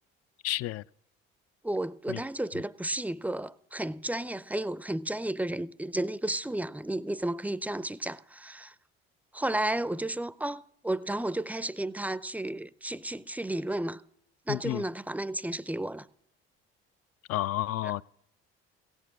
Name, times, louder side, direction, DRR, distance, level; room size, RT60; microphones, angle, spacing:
voice 1, 0.4-0.8 2.1-2.2 14.5-14.8 17.3-18.0, left 15 dB, 55° left, 0.4 m, -31 dB
voice 2, 1.6-8.7 9.3-14.0 14.5-16.1 17.8-17.9, right 1 dB, 5° right, 0.5 m, -32 dB
16.5 x 9.0 x 6.1 m
hypercardioid pair, 55°, 30 cm